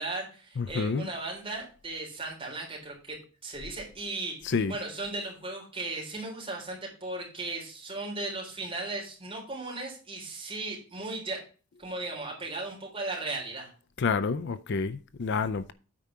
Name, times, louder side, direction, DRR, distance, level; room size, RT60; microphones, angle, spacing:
voice 1, 0.0-11.4 11.8-13.7, right 2 dB, 25° right, 3.6 m, -36 dB
voice 2, 0.6-1.0 4.4-4.7 14.0-15.7, left 4 dB, 55° left, 0.5 m, -29 dB
8.9 x 4.8 x 5.6 m
head